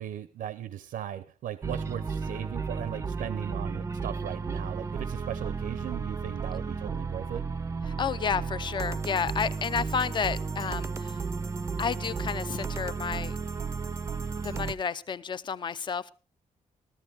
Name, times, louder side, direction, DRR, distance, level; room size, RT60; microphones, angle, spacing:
voice 1, 0.0-7.5, right 11 dB, 90° right, 14 dB, 0.7 m, -38 dB
sound 1, 1.6-14.7, right 5 dB, 20° right, 0.5 m, -33 dB
voice 2, 8.0-11.2 11.8-13.4 14.4-16.1, left 6 dB, 35° left, 15 dB, 0.5 m, -31 dB
14.0 x 13.5 x 3.5 m, 0.34 s
wide cardioid pair, 175°, 14 cm